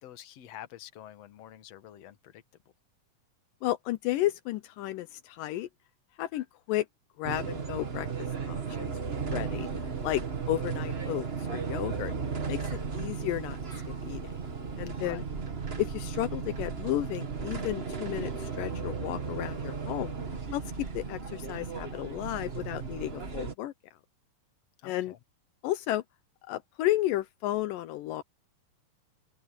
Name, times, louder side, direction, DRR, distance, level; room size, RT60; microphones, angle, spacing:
voice 1, 0.0-2.6 15.0-15.2 24.8-25.2, left 12 dB, 55° left, 2.3 m, -47 dB
voice 2, 3.6-5.7 6.2-6.9 7.2-8.1 8.4-8.9 9.3-9.7 10.0-12.1 12.5-13.6 14.0-14.2 14.8-15.2 15.8-20.1 20.5-23.7 24.8-25.1 25.6-26.0 26.5-28.2, left 15 dB, 80° left, 2.4 m, -33 dB
sound 1, 7.2-23.5, right 5 dB, 65° right, 0.6 m, -35 dB
sound 2, 9.0-15.0, right 6 dB, 90° right, 6.2 m, -51 dB
omnidirectional pair, 3.9 m